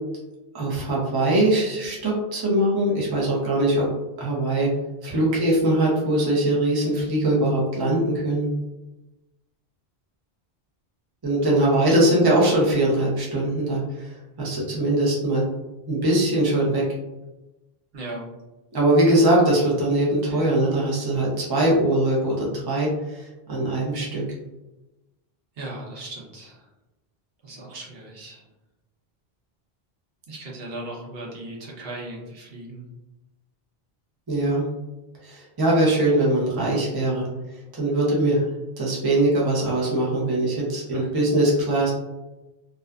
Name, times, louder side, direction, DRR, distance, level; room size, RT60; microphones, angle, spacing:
voice 1, 0.5-3.9 4.2-4.7 5.0-8.5 11.2-15.5 15.9-16.8 18.7-24.2 34.3-34.7 35.2-37.3 37.8-38.4 38.8-41.9, right 1 dB, 25° right, -4 dB, 0.6 m, -21 dB
voice 2, 11.4-12.0 17.9-18.2 20.3-20.5 25.6-26.7 27.4-28.5 30.3-32.8 40.9-41.1, right 2 dB, 70° right, -3 dB, 0.9 m, -38 dB
2.4 x 2.4 x 2.2 m, 1.0 s
omnidirectional pair, 1.0 m